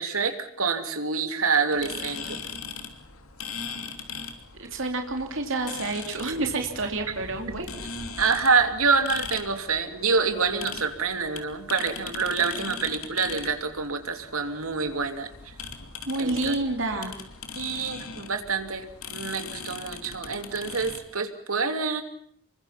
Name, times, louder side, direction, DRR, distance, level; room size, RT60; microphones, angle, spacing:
voice 1, 0.0-2.4 7.5-7.6 8.2-15.5 16.2-16.5 17.5-22.0, right 5 dB, 90° right, 7 dB, 2.9 m, -27 dB
sound 1, 1.7-21.0, left 5 dB, 90° left, 3.0 m, -40 dB
voice 2, 4.6-7.7 16.1-17.1, right 2 dB, 65° right, 3 dB, 3.0 m, -29 dB
27.0 x 23.5 x 5.9 m, 0.66 s
head